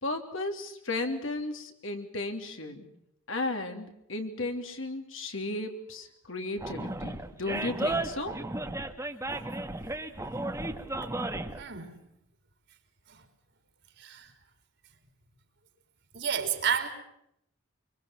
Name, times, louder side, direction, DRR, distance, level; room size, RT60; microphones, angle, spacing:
voice 1, 0.0-2.9 3.3-8.4, left 2 dB, 65° left, 3.2 m, -34 dB
Animal, 6.6-11.6, right 2 dB, 15° right, 1.5 m, -34 dB
voice 2, 11.6-12.0 13.1-13.2 14.0-14.3 16.1-16.9, right 7 dB, 55° right, 3.8 m, -31 dB
25.0 x 24.0 x 5.8 m
head